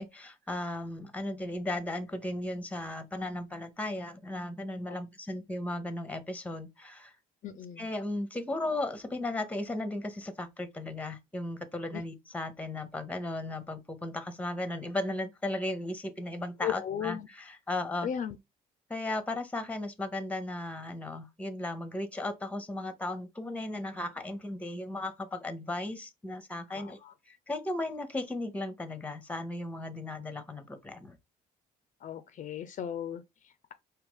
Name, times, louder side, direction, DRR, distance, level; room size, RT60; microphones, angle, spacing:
voice 1, 0.0-7.1 7.8-18.1 18.9-27.0 27.3-31.2, left 2 dB, 10° left, 0.9 m, -36 dB
voice 2, 7.4-7.9 11.9-12.0 16.6-17.3 18.0-18.4 26.7-27.1 32.0-33.7, left 9 dB, 50° left, 0.5 m, -36 dB
4.8 x 2.9 x 3.6 m
cardioid pair, 110°, 17 cm